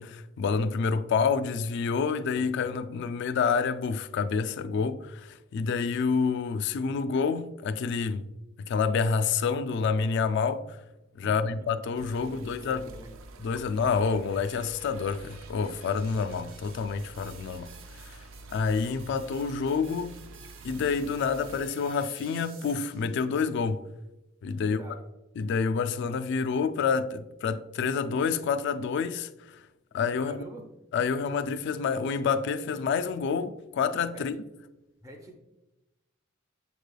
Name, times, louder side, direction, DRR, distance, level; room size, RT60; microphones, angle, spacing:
voice 1, 0.0-8.2 8.6-10.8 11.2-12.9 13.4-17.7 18.0-18.2 18.5-20.2 20.6-23.8 24.4-24.8 25.4-29.6 29.9-30.4 30.9-34.4, left 5 dB, 60° left, 0.3 m, -28 dB
voice 2, 11.2-11.7 12.2-13.1 24.6-25.1 30.2-30.6 34.1-34.4 35.0-35.4, right 1 dB, 15° right, 0.5 m, -46 dB
sound 1, 11.9-21.7, right 2 dB, 65° right, 0.3 m, -48 dB
sound 2, 12.1-23.2, right 5 dB, 85° right, 0.8 m, -53 dB
7.0 x 3.2 x 2.2 m
head